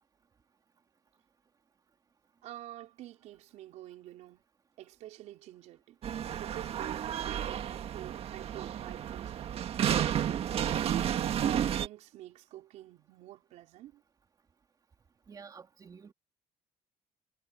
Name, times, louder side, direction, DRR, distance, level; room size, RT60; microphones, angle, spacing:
voice 1, 2.4-4.4 4.8-6.0 6.4-9.9 10.8-14.0, right 14 dB, 75° right, 4.2 m, -47 dB
sound 1, 6.0-11.9, right 10 dB, 55° right, 1.7 m, -32 dB
voice 2, 15.3-16.1, right 5 dB, 30° right, 2.6 m, -50 dB
cardioid pair, 120°, 12 cm